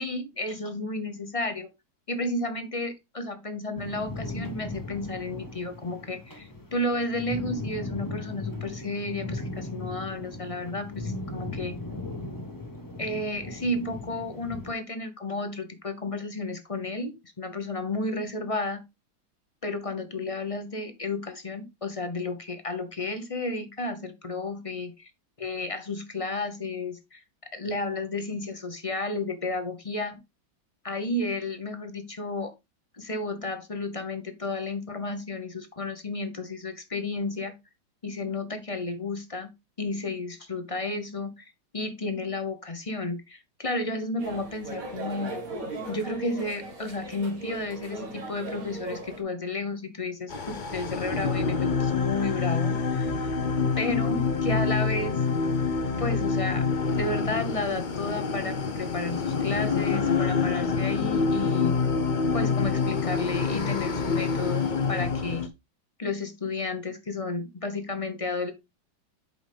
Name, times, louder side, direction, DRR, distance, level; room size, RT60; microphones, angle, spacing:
voice 1, 0.0-1.7 2.1-11.8 13.0-18.8 19.6-24.9 25.4-27.2 27.5-30.2 30.8-32.5 33.0-37.6 38.0-39.5 39.8-45.5 45.9-53.3 53.8-55.2 56.0-61.8 62.3-65.5 66.0-68.5, left 2 dB, 30° left, 0.7 m, -32 dB
sound 1, 3.8-14.7, left 2 dB, 10° left, 1.2 m, -37 dB
sound 2, 44.2-49.2, right 3 dB, 45° right, 2.1 m, -38 dB
sound 3, 50.3-65.5, left 5 dB, 65° left, 0.4 m, -26 dB
7.9 x 5.4 x 3.5 m
omnidirectional pair, 2.1 m